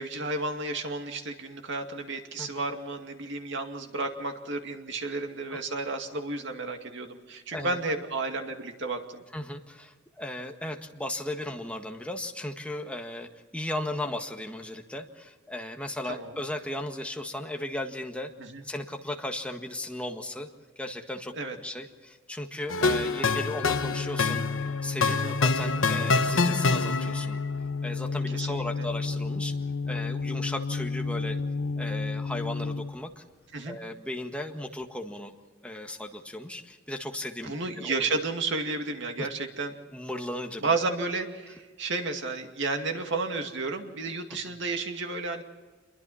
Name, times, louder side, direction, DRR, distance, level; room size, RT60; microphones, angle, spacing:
voice 1, 0.0-9.2 16.0-16.3 18.4-18.6 21.3-21.6 25.1-25.4 28.3-28.9 33.5-33.8 37.4-39.8 40.6-45.4, right 3 dB, 65° right, 4 dB, 2.4 m, -32 dB
voice 2, 9.3-18.3 18.6-20.5 20.8-24.4 24.8-27.4 27.8-29.6 29.9-31.4 31.8-33.2 33.6-35.3 35.6-38.0 39.2-39.3 39.9-40.7, left 1 dB, 5° left, 3 dB, 1.6 m, -36 dB
sound 1, 22.7-27.4, left 4 dB, 90° left, 1.2 m, -26 dB
sound 2, 23.6-33.0, left 4 dB, 65° left, 0.5 m, -32 dB
27.5 x 23.0 x 4.3 m, 1.4 s
head